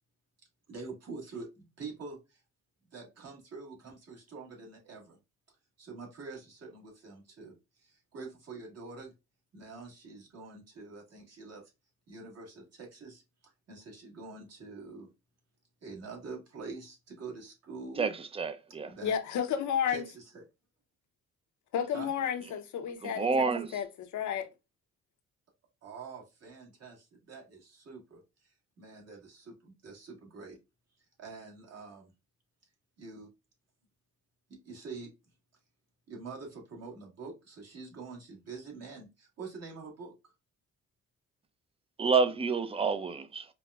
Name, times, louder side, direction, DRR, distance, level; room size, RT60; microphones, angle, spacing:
voice 1, 0.7-2.4 2.9-5.2 5.8-9.1 9.5-11.7 12.1-15.1 15.8-18.1 18.9-19.1 19.9-20.4 21.9-22.1 25.8-30.6 31.2-32.1 33.0-33.3 34.5-35.1 36.1-40.3, right 4 dB, 55° right, 1.6 m, -46 dB
voice 2, 18.0-18.9 23.2-23.7 42.0-43.5, right 5 dB, 20° right, 0.4 m, -28 dB
voice 3, 19.0-20.0 21.7-23.5 23.7-24.5, left 8 dB, 70° left, 0.8 m, -32 dB
5.0 x 2.1 x 2.3 m
cardioid pair, 90°, 30 cm